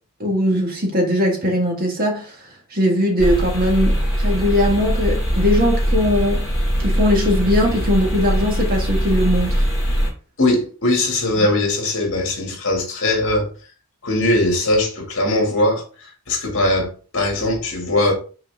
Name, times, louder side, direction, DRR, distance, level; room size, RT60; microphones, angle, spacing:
voice 1, 0.2-2.3 2.7-6.5 6.8-9.6, left 1 dB, 40° right, 1.9 m, -20 dB
sound 1, 3.2-10.1, equal, ahead, 3.5 m, -21 dB
voice 2, 10.4-13.5 14.0-18.1, left 1 dB, 60° left, 2.5 m, -20 dB
5.8 x 4.6 x 3.7 m
head